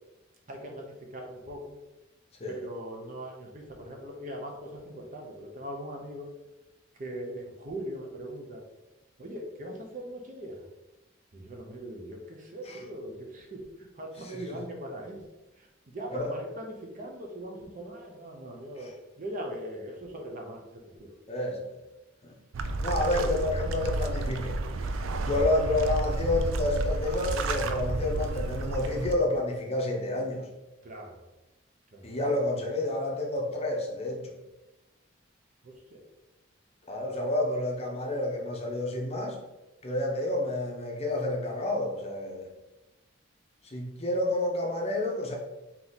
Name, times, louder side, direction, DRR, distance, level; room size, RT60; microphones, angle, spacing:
voice 1, 0.5-1.8 2.5-6.3 7.0-8.6 9.2-10.7 11.3-15.2 15.6-21.1 23.0-23.3 30.8-31.3 31.9-32.1 35.6-36.0, right 1 dB, 40° right, 1 dB, 0.7 m, -40 dB
voice 2, 21.3-21.6 22.2-22.3 22.8-24.6 25.3-30.5 32.0-34.3 36.9-39.4 39.8-42.5 43.6-45.4, left 1 dB, 30° left, 1 dB, 0.7 m, -29 dB
sound 1, 22.5-29.1, right 2 dB, 80° right, 0.4 m, -31 dB
3.7 x 2.9 x 3.9 m, 1.0 s
head